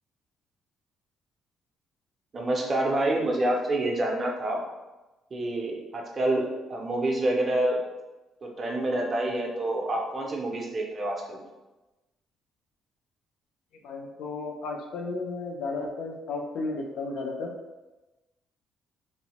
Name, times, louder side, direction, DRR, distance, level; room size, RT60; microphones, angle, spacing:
voice 1, 2.3-4.6 5.3-7.8 8.4-11.5, right 1 dB, 25° right, 0 dB, 0.4 m, -27 dB
voice 2, 13.8-17.5, left 3 dB, 75° left, 2 dB, 0.5 m, -33 dB
3.0 x 2.1 x 2.9 m, 1.1 s
cardioid pair, 170°, 0 cm